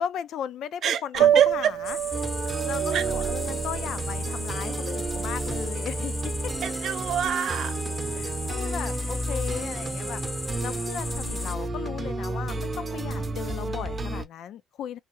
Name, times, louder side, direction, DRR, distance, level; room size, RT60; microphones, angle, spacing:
voice 1, 0.0-2.0 2.7-6.5 8.1-10.2 10.6-15.0, left 9 dB, 70° left, 0.4 m, -36 dB
voice 2, 0.8-1.7 2.9-3.0 6.6-7.8, right 9 dB, 65° right, 0.7 m, -26 dB
Piano, 1.1-7.1, right 11 dB, 80° right, 0.3 m, -28 dB
sound 1, 1.8-11.5, left 2 dB, 20° left, 0.7 m, -37 dB
sound 2, 2.1-14.3, right 2 dB, 30° right, 0.7 m, -31 dB
3.4 x 2.1 x 3.0 m
cardioid pair, 80°, 0 cm